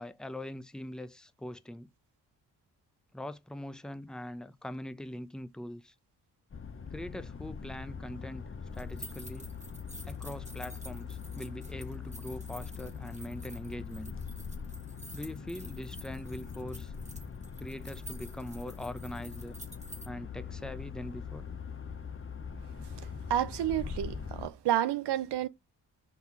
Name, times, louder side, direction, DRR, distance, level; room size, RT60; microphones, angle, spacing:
voice 1, 0.0-1.9 3.1-5.9 6.9-8.4 8.7-9.5 10.1-14.1 15.1-16.9 17.6-19.6 20.0-21.4, left 1 dB, ahead, 0.7 m, -42 dB
sound 1, 6.5-24.5, left 6 dB, 30° left, 0.9 m, -42 dB
sound 2, 8.7-20.1, right 1 dB, 15° right, 1.7 m, -50 dB
voice 2, 23.3-25.5, right 11 dB, 70° right, 0.8 m, -30 dB
5.5 x 3.9 x 4.7 m
hypercardioid pair, 40°, 43 cm